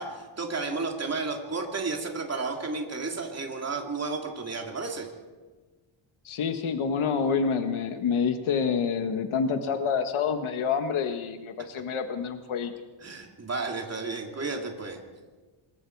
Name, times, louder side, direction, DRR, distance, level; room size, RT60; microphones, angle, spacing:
voice 1, 0.0-5.1 13.0-15.0, right 3 dB, 30° right, 2 dB, 3.0 m, -32 dB
voice 2, 6.2-12.7, left 6 dB, 75° left, 7 dB, 1.5 m, -27 dB
26.5 x 21.5 x 4.7 m, 1.3 s
wide cardioid pair, 150°, 49 cm